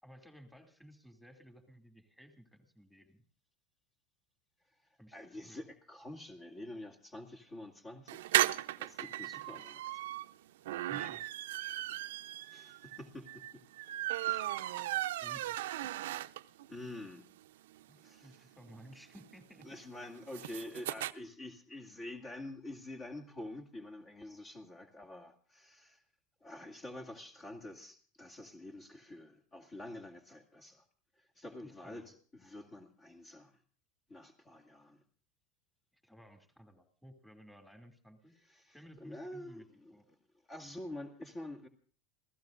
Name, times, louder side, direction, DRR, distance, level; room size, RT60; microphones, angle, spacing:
voice 1, 0.0-3.2 5.0-5.2 5.4-5.6 9.6-9.7 10.9-11.3 15.2-16.0 17.9-19.7 31.6-32.1 36.0-38.3 38.7-39.7 39.9-40.0, equal, 5° left, 6 dB, 2.7 m, -56 dB
voice 2, 5.1-8.3 8.8-10.0 12.5-13.6 14.3-14.6 16.7-17.3 18.0-18.5 19.6-26.0 26.4-30.8 31.2-33.6 34.1-35.0 38.5-40.0 40.5-41.7, left 1 dB, 30° left, 3 dB, 2.3 m, -47 dB
sound 1, 8.1-16.7 17.1-17.2 17.4-17.5 17.7-21.1, right 15 dB, 85° right, 0.7 m, -36 dB
28.0 x 16.0 x 2.6 m, 0.41 s
supercardioid pair, 115°, 0 cm